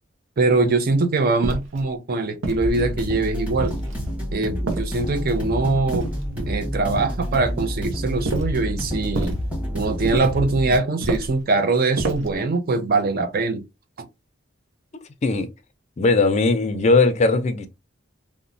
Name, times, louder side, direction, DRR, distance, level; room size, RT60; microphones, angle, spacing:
voice 1, 0.4-3.8 4.3-6.1 6.4-9.4 9.7-13.6 14.0-14.1, right 3 dB, 50° right, 0.4 m, -22 dB
sound 1, 1.4-1.8 2.4-3.1 3.6-4.1 4.7-5.3 5.9-6.6 8.2-8.6 9.1-9.4 10.0-10.4 11.0-11.4 12.0-12.4, right 2 dB, 85° right, 0.7 m, -29 dB
sound 2, 2.6-10.8, equal, 10° right, 1.0 m, -28 dB
voice 2, 16.0-17.7, left 3 dB, 35° left, 0.4 m, -18 dB
2.9 x 2.1 x 2.5 m
head